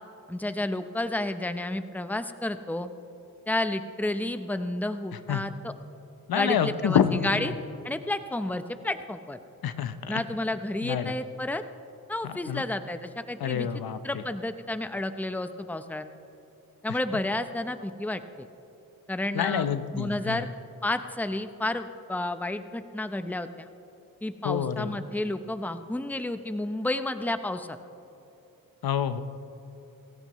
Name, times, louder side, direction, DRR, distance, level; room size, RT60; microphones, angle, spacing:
voice 1, 0.3-2.9 3.5-5.7 6.3-7.5 7.8-9.4 10.1-11.6 12.1-13.7 14.0-16.1 16.8-18.5 19.1-19.7 19.9-20.5 20.8-23.7 24.2-27.8, left 1 dB, 5° left, 9 dB, 0.7 m, -31 dB
voice 2, 6.3-7.5 9.6-10.2 10.8-11.1 12.2-12.6 13.4-14.2 16.9-17.0 19.3-20.5 24.4-25.0 28.8-29.2, left 8 dB, 85° left, 11 dB, 0.8 m, -28 dB
28.5 x 15.0 x 3.1 m, 3.0 s
cardioid pair, 75°, 36 cm